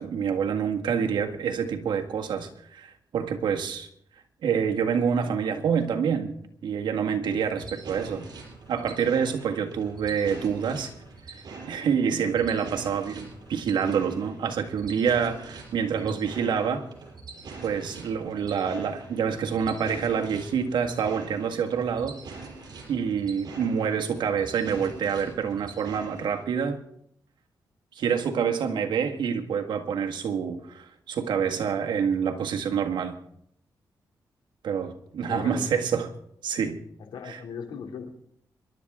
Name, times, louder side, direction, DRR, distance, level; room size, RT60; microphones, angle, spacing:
voice 1, 0.0-3.9 4.4-6.4 6.6-8.3 8.7-10.9 11.3-16.8 17.6-22.2 22.9-26.8 28.0-33.2 34.6-36.1 36.4-36.8 37.2-37.4, right 7 dB, 90° right, 1.7 m, -27 dB
sound 1, 7.3-26.4, right 4 dB, 60° right, 5.4 m, -44 dB
voice 2, 35.3-35.7 37.0-38.1, left 6 dB, 85° left, 2.7 m, -39 dB
27.0 x 12.0 x 3.7 m
cardioid pair, 85°, 8 cm